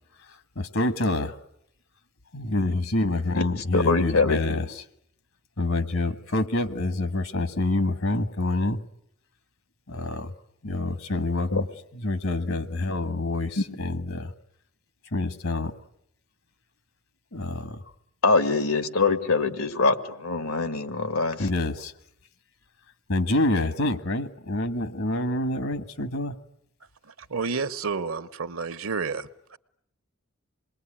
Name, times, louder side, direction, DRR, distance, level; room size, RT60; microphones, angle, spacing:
voice 1, 0.2-1.4 2.3-4.8 5.6-8.8 9.9-10.3 10.6-11.7 11.9-14.3 15.0-15.7 17.3-17.9 21.4-21.9 23.1-26.4, left 2 dB, 70° left, 1.5 m, -27 dB
voice 2, 3.7-4.6 13.6-13.7 18.2-21.4, left 3 dB, 90° left, 1.9 m, -23 dB
voice 3, 27.3-29.6, right 5 dB, 75° right, 1.0 m, -30 dB
27.0 x 21.5 x 10.0 m
head